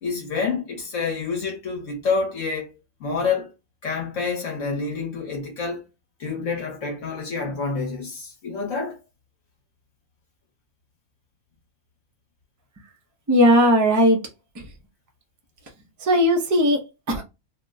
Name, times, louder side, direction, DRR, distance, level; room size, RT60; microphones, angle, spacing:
voice 1, 0.0-2.7 3.0-3.5 3.8-5.8 6.2-9.0, left 4 dB, 65° left, 1.2 m, -28 dB
voice 2, 13.3-14.2 14.6-14.7 16.0-17.2, equal, 30° right, 0.3 m, -18 dB
2.8 x 2.1 x 3.5 m
omnidirectional pair, 1.5 m